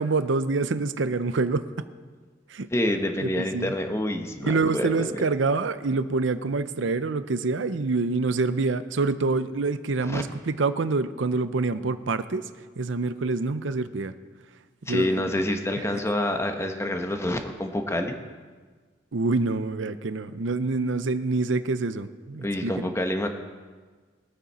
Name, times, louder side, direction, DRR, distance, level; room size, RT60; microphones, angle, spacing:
voice 1, 0.0-1.8 2.5-2.7 3.2-3.7 4.4-12.5 12.8-14.1 14.9-15.3 15.9-16.0 19.1-22.9, right 3 dB, 75° right, 12 dB, 0.6 m, -26 dB
voice 2, 2.7-5.1 10.1-10.2 14.9-18.2 22.4-23.3, left 1 dB, 15° left, 5 dB, 1.0 m, -27 dB
21.5 x 9.1 x 4.3 m, 1.5 s
head